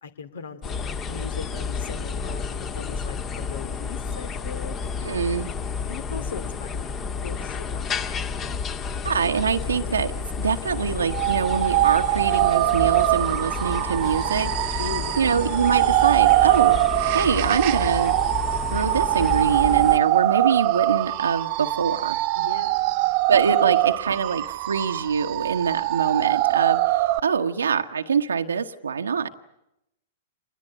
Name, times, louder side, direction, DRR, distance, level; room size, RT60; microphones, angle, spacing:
voice 1, 0.0-4.8 5.4-7.0 7.2-7.8 8.4-8.9 14.8-15.2 22.3-23.2, left 6 dB, 70° left, 13 dB, 2.5 m, -39 dB
sound 1, 0.6-20.0, left 5 dB, 25° left, 1.7 m, -31 dB
voice 2, 5.0-5.5 9.0-10.1 10.4-14.8 15.2-16.8 17.1-18.2 18.7-22.2 23.3-29.3, right 6 dB, 85° right, 5 dB, 1.1 m, -24 dB
sound 2, 11.1-27.2, right 18 dB, 50° right, 1.1 m, -22 dB
26.5 x 20.5 x 8.8 m, 0.84 s
hypercardioid pair, 110°, 0 cm